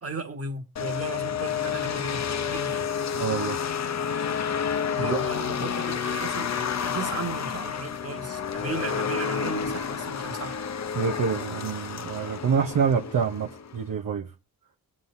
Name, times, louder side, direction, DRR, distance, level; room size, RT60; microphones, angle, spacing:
voice 1, 0.0-2.8 4.9-10.6, right 3 dB, 40° right, 1.8 m, -36 dB
sound 1, 0.8-13.8, left 7 dB, 45° left, 0.8 m, -30 dB
voice 2, 3.1-3.6 5.0-5.2 10.9-14.3, right 6 dB, 65° right, 1.1 m, -27 dB
22.5 x 7.7 x 2.7 m
cardioid pair, 95°, 37 cm